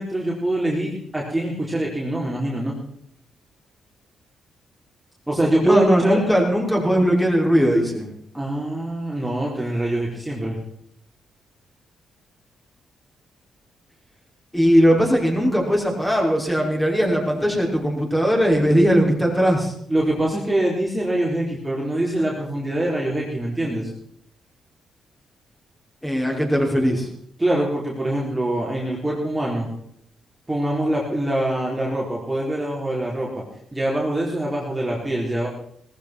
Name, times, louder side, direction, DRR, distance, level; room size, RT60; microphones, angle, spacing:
voice 1, 0.0-2.7 5.3-6.2 8.3-10.6 19.9-23.9 27.4-29.7 30.5-33.4 33.7-35.5, right 1 dB, 10° right, -3 dB, 4.2 m, -24 dB
voice 2, 5.6-8.1 14.5-19.7 26.0-27.1, equal, 10° left, -1 dB, 5.5 m, -19 dB
18.5 x 15.0 x 4.5 m, 0.66 s
cardioid pair, 100°, 0 cm